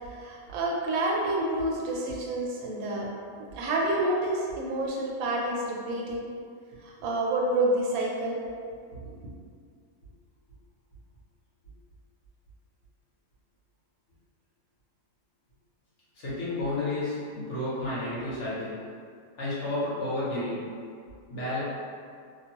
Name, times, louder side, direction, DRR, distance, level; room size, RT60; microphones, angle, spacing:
voice 1, 0.0-3.1 3.5-6.2 6.8-8.4 9.0-9.1, right 1 dB, 70° right, -3 dB, 1.0 m, -28 dB
voice 2, 16.1-18.8 19.4-20.7 21.3-21.6, left 2 dB, 50° left, -10 dB, 1.2 m, -31 dB
2.9 x 2.2 x 2.8 m, 2.2 s
omnidirectional pair, 1.7 m